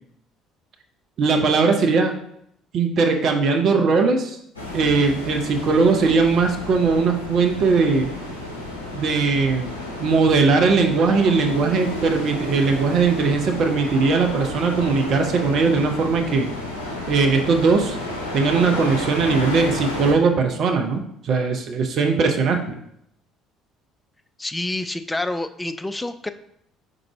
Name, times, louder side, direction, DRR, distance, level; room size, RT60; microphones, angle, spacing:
voice 1, 1.2-2.1 2.7-4.4 4.7-8.1 8.9-9.7 10.0-16.5 17.1-18.0 18.3-22.8, right 4 dB, 50° right, 3 dB, 0.6 m, -19 dB
sound 1, 4.5-20.1, left 1 dB, 85° left, 0.7 m, -31 dB
voice 2, 24.4-26.3, left 2 dB, 15° left, 10 dB, 0.4 m, -28 dB
4.6 x 3.8 x 3.0 m, 0.72 s
figure-of-eight pair, 55°, 0 cm